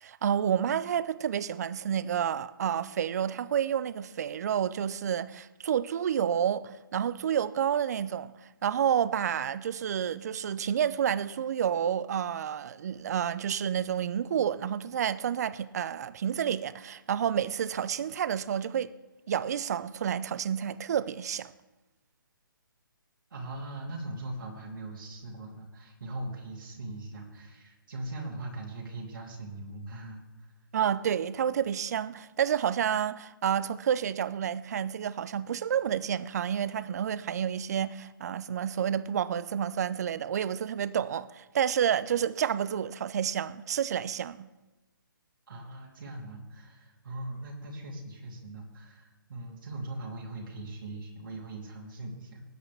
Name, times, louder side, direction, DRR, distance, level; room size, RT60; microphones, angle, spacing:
voice 1, 0.0-8.3 8.6-18.9 19.3-21.5 30.7-44.5, right 9 dB, 45° right, 0.5 m, -29 dB
voice 2, 23.3-30.3 45.5-52.4, right 2 dB, 65° right, 3.0 m, -40 dB
19.0 x 8.6 x 3.4 m
hypercardioid pair, 150°, 12 cm